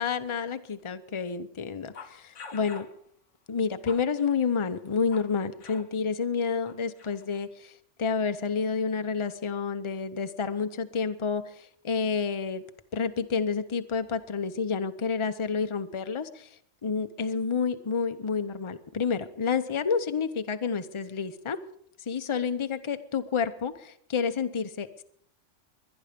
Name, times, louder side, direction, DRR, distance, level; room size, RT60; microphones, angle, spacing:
voice 1, 0.0-2.9 3.5-12.6 12.9-21.6 22.1-25.0, left 5 dB, 30° left, 10 dB, 0.8 m, -29 dB
sound 1, 1.9-3.0 3.6-5.3 5.6-5.9 6.6-7.4, left 4 dB, 85° left, 1.4 m, -47 dB
22.0 x 10.5 x 5.2 m, 0.66 s
omnidirectional pair, 1.2 m